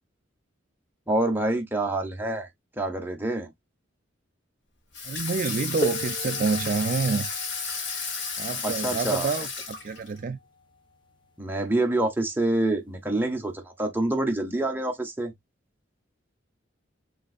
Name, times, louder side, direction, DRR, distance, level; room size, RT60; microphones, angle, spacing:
voice 1, 1.1-2.5 2.8-3.5 8.6-9.3 11.4-15.3, right 2 dB, 10° right, 1.0 m, -26 dB
Water tap faucet / Sink (filling or washing), 4.9-10.2, left 4 dB, 65° left, 1.6 m, -32 dB
voice 2, 5.0-7.3 8.4-10.4, right 4 dB, 45° right, 0.4 m, -28 dB
sound 1, 5.8-11.2 12.3-12.4 13.2-13.4, right 2 dB, 25° left, 1.0 m, -37 dB
5.3 x 3.3 x 2.5 m
head